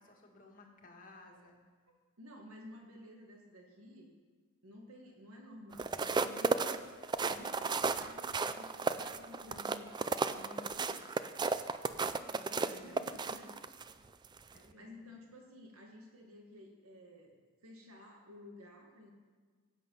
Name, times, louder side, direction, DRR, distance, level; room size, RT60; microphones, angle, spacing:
voice 1, 0.0-1.6 12.0-13.5 14.5-15.0, left 2 dB, 40° left, 1 dB, 1.6 m, -58 dB
voice 2, 2.2-4.1 4.6-6.9 7.2-9.9 10.2-11.1 12.5-13.6 14.7-17.3 17.6-19.1, left 1 dB, 85° right, 1 dB, 1.9 m, -53 dB
sound 1, 5.7-13.9 14.4-14.6, right 4 dB, 20° right, 0.3 m, -34 dB
15.5 x 8.4 x 5.6 m, 1.5 s
head